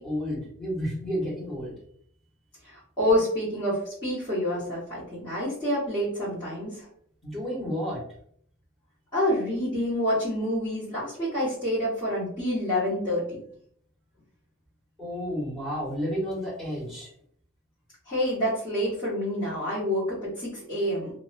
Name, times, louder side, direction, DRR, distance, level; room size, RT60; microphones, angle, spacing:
voice 1, 0.0-1.7 7.2-8.0 15.0-17.1, equal, ahead, -6 dB, 1.0 m, -31 dB
voice 2, 2.6-6.8 9.1-13.4 18.1-21.1, equal, 20° left, -12 dB, 1.1 m, -27 dB
2.5 x 2.1 x 2.5 m, 0.64 s
head